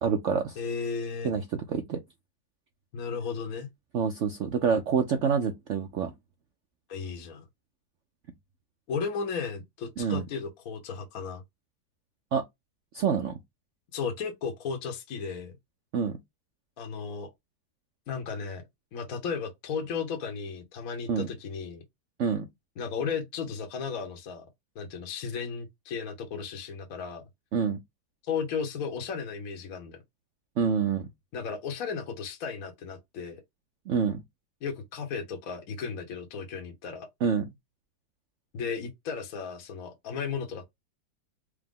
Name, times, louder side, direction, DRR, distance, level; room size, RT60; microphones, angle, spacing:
voice 1, 0.0-0.6 1.2-2.0 3.9-6.1 10.0-10.2 12.3-12.4 12.9-13.3 15.9-16.2 21.1-21.3 22.2-22.5 27.5-27.8 30.6-31.1 33.9-34.2 37.2-37.4, right 6 dB, 65° right, 0.7 m, -27 dB
voice 2, 0.6-1.3 2.9-3.7 6.9-7.4 8.9-11.4 13.9-15.5 16.8-17.3 18.1-18.6 18.9-21.8 22.8-24.5 24.7-27.2 28.3-30.0 31.3-33.4 34.6-37.1 38.5-40.6, left 5 dB, 60° left, 1.2 m, -34 dB
4.8 x 2.1 x 3.5 m
omnidirectional pair, 1.9 m